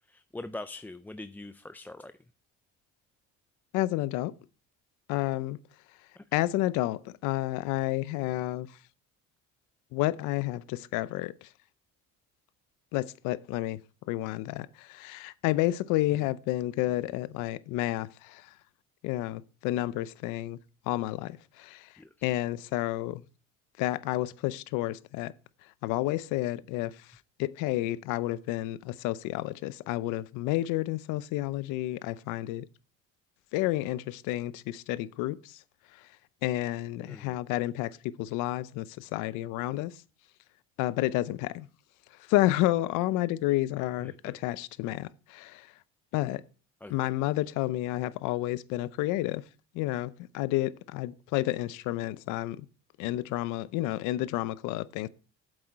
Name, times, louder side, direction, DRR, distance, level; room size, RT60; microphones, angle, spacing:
voice 1, 0.1-2.1 6.2-6.3 22.0-22.1 37.1-37.4 44.0-44.1 46.8-46.9, left 2 dB, 5° left, 0.3 m, -42 dB
voice 2, 3.7-4.3 5.1-5.6 6.3-8.7 9.9-11.5 12.9-13.8 14.1-18.4 19.0-20.6 20.9-21.9 22.2-23.2 23.8-25.3 25.8-26.9 27.4-32.7 33.5-35.6 36.4-39.9 40.8-41.7 42.3-45.7 46.1-46.4 46.9-49.4 49.7-52.7 53.0-55.1, left 16 dB, 80° left, 0.7 m, -30 dB
8.0 x 7.8 x 4.1 m
cardioid pair, 100°, 30 cm